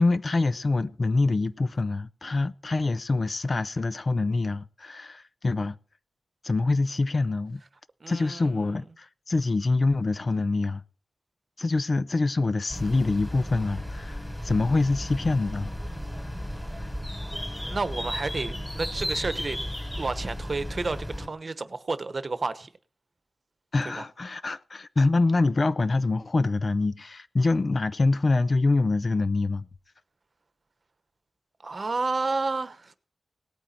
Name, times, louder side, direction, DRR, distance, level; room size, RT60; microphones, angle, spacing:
voice 1, 0.0-5.8 6.4-7.6 8.1-10.8 11.6-15.7 23.7-29.7, left 3 dB, 40° left, 0.6 m, -25 dB
voice 2, 8.0-8.5 17.7-19.6 20.0-22.7 23.9-24.0 31.6-32.9, right 3 dB, 40° right, 1.1 m, -30 dB
sound 1, 12.7-21.3, equal, 10° left, 3.3 m, -34 dB
18.0 x 9.1 x 4.4 m
wide cardioid pair, 120°, 0 cm